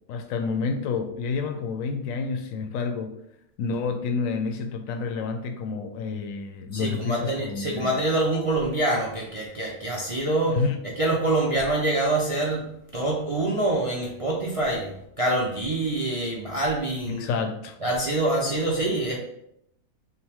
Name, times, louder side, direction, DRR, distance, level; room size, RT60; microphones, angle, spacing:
voice 1, 0.1-3.1 3.6-7.9 10.5-10.8 17.0-17.8, left 4 dB, 70° left, 7 dB, 0.9 m, -29 dB
voice 2, 6.7-10.6 11.0-17.3 17.8-19.2, right 2 dB, 50° right, -3 dB, 0.4 m, -25 dB
5.7 x 2.2 x 3.4 m, 0.77 s
omnidirectional pair, 1.5 m